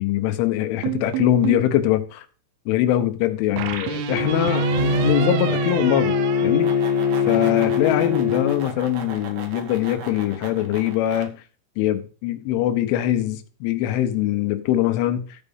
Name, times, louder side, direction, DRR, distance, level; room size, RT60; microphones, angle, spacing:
voice 1, 0.0-2.2 2.7-6.2 6.4-6.7 7.3-11.4 11.8-15.2, left 12 dB, 75° left, 3.2 m, -22 dB
sound 1, 0.8-1.7 3.6-7.3, right 9 dB, 85° right, 3.6 m, -30 dB
Bowed string instrument, 4.1-8.6, left 4 dB, 40° right, 0.7 m, -22 dB
sound 2, 6.3-11.3, right 4 dB, 60° right, 2.9 m, -37 dB
14.0 x 4.7 x 5.4 m
omnidirectional pair, 6.0 m